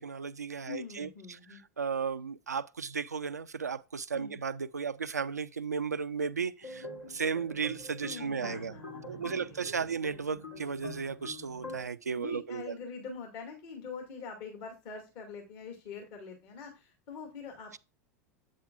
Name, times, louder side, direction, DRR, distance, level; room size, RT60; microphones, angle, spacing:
voice 1, 0.0-1.1 1.8-8.7 9.1-12.6, right 5 dB, 90° right, 0.4 m, -35 dB
voice 2, 0.7-1.6 4.1-4.4 8.0-9.9 12.2-17.8, left 5 dB, 55° left, 2.3 m, -44 dB
sound 1, 6.6-11.8, left 2 dB, 80° left, 3.2 m, -45 dB
8.4 x 7.4 x 2.5 m
figure-of-eight pair, 85°, 9 cm